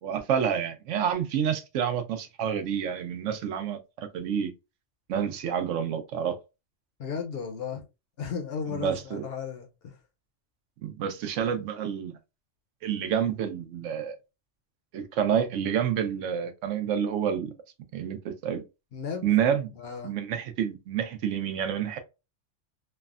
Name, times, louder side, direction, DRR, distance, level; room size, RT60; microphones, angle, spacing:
voice 1, 0.0-4.5 5.1-6.3 8.7-9.2 10.8-12.1 12.8-14.2 14.9-17.5 17.9-18.6 19.2-19.7 20.0-22.0, right 8 dB, 80° right, 0.9 m, -28 dB
voice 2, 7.0-7.8 8.2-10.0 18.9-19.4 19.8-20.2, left 6 dB, 60° left, 0.7 m, -35 dB
3.3 x 2.1 x 2.3 m
omnidirectional pair, 1.3 m